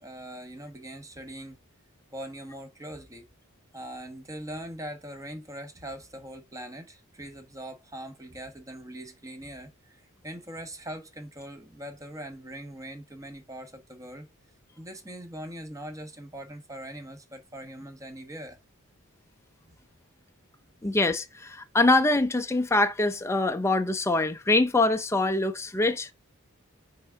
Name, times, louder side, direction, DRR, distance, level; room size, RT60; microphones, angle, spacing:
voice 1, 0.0-1.6 2.1-3.3 3.7-14.3 14.8-18.6 19.7-19.8 20.8-20.9, right 1 dB, 15° right, 1.1 m, -41 dB
voice 2, 20.8-26.1, left 2 dB, 10° left, 0.5 m, -24 dB
6.1 x 3.6 x 4.6 m
head